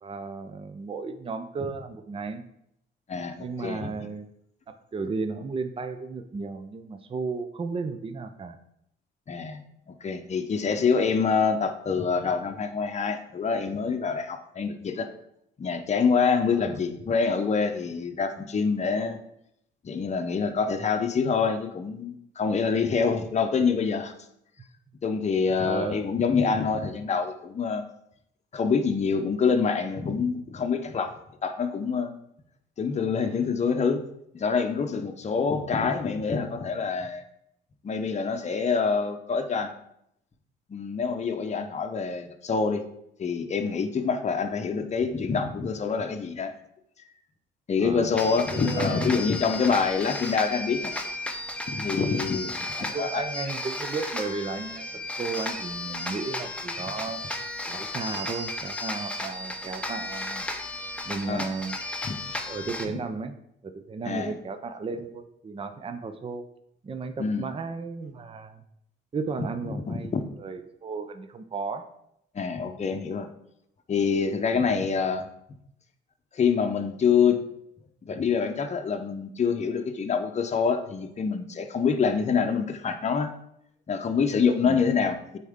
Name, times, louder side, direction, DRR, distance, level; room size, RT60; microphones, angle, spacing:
voice 1, 0.0-2.5 3.4-4.3 4.7-8.6 16.5-16.8 25.6-26.0 47.8-48.2 48.5-49.3 52.8-54.9 55.2-57.2 57.7-60.4 61.0-61.8 62.5-63.3 63.6-66.5 66.8-68.6 69.1-71.9 84.6-84.8, right 4 dB, 30° right, 9 dB, 0.6 m, -34 dB
voice 2, 3.6-3.9 9.3-9.6 9.9-15.1 15.6-19.2 19.8-24.1 25.0-27.8 28.5-31.1 31.4-32.1 32.8-34.0 34.3-37.2 37.8-39.7 40.7-42.8 43.2-46.6 47.7-50.9 51.7-52.5 53.0-53.2 61.3-61.5 62.0-62.1 64.0-64.3 67.2-67.4 69.9-70.2 72.3-73.3 73.9-75.3 76.3-77.4 78.0-83.3 83.9-85.4, left 5 dB, 35° left, 5 dB, 0.8 m, -26 dB
sound 1, 48.2-62.9, left 2 dB, 5° left, 0.8 m, -34 dB
8.2 x 4.3 x 3.6 m, 0.76 s
cardioid pair, 90°, 20 cm